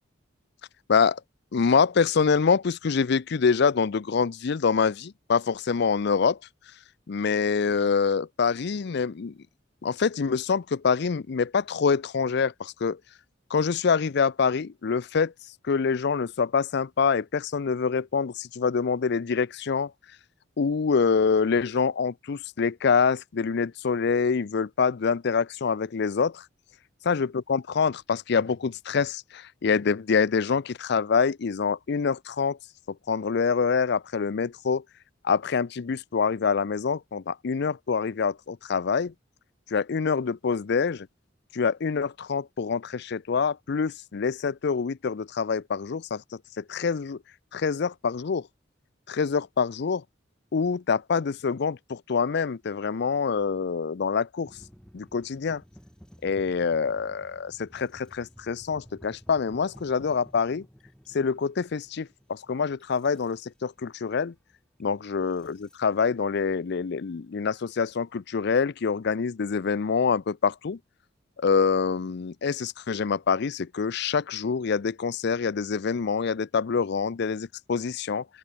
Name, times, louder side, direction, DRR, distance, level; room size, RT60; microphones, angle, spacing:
voice 1, 0.9-1.2 1.5-6.4 7.1-9.3 9.8-13.0 13.5-15.3 15.7-19.9 20.6-26.4 27.1-32.6 32.9-34.8 35.2-39.1 39.7-41.1 41.5-46.2 46.6-47.2 47.5-48.5 49.1-50.0 50.5-54.5 54.9-55.6 56.2-60.7 61.1-64.3 64.8-70.8 71.4-78.2, left 5 dB, 60° left, 0.5 m, -25 dB
sound 1, 54.4-66.1, equal, 5° left, 3.4 m, -54 dB
open air
head